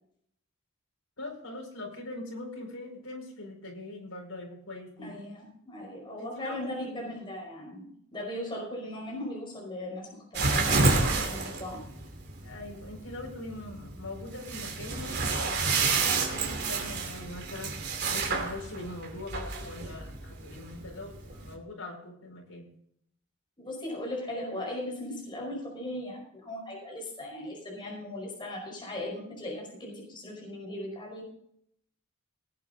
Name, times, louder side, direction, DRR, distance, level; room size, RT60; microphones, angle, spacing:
voice 1, 1.2-5.2 6.2-7.1 12.4-22.7, left 2 dB, 70° left, 0 dB, 4.9 m, -42 dB
voice 2, 5.0-11.8 23.6-31.3, left 1 dB, 20° left, -2 dB, 5.1 m, -38 dB
sound 1, 10.3-21.5, right 3 dB, 50° right, 2.7 m, -30 dB
18.5 x 9.1 x 4.0 m, 0.68 s
head